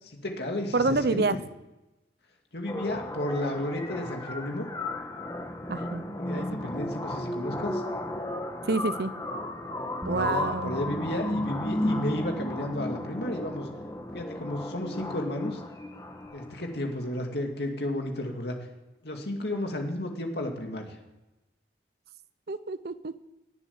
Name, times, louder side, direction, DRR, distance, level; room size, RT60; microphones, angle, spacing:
voice 1, 0.0-1.4 2.5-4.7 6.2-7.8 10.1-13.7 14.1-15.6 16.3-18.6 19.0-21.0, left 1 dB, 65° left, 2 dB, 2.4 m, -32 dB
voice 2, 0.7-1.4 5.7-6.0 6.3-6.5 8.7-9.1 10.1-10.7 22.5-23.1, right 3 dB, 60° right, 14 dB, 0.6 m, -27 dB
sound 1, 2.7-16.7, left 1 dB, 20° left, 1.3 m, -34 dB
sound 2, 10.0-16.3, equal, 20° right, 1.6 m, -42 dB
19.0 x 7.4 x 8.7 m, 1.0 s
head